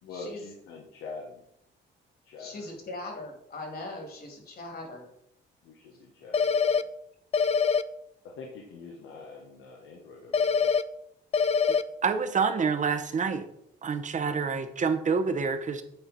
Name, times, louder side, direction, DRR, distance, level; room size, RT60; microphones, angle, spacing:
voice 1, 0.0-1.4 2.2-2.7 5.6-6.8 8.2-10.7, left 3 dB, 85° left, 0 dB, 1.1 m, -44 dB
voice 2, 2.4-5.0, left 2 dB, 50° left, 2 dB, 2.4 m, -40 dB
sound 1, 6.3-6.8 7.3-7.8 10.3-10.8 11.3-11.8, left 6 dB, 30° left, 0.4 m, -23 dB
voice 3, 12.0-13.4 13.8-15.8, right 5 dB, 40° right, 8 dB, 0.9 m, -27 dB
8.9 x 4.3 x 4.1 m, 0.75 s
cardioid pair, 90°, 20 cm